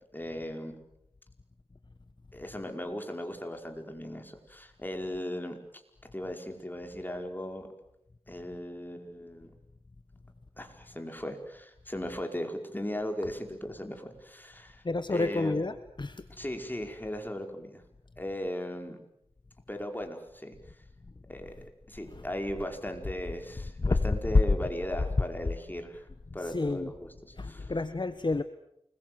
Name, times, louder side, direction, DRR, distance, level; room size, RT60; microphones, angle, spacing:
voice 1, 0.1-0.8 2.3-5.6 6.1-7.7 8.3-9.5 10.6-14.8 15.1-15.6 16.3-17.8 18.2-19.0 19.7-20.6 21.3-21.5 21.9-26.1 26.3-27.7, left 1 dB, 20° left, 4 dB, 5.0 m, -37 dB
voice 2, 14.8-16.2 22.1-22.2 23.8-24.1 26.4-26.9 27.4-28.4, left 3 dB, 50° left, 11 dB, 1.2 m, -30 dB
29.0 x 22.0 x 7.8 m, 0.77 s
wide cardioid pair, 50°, 10 cm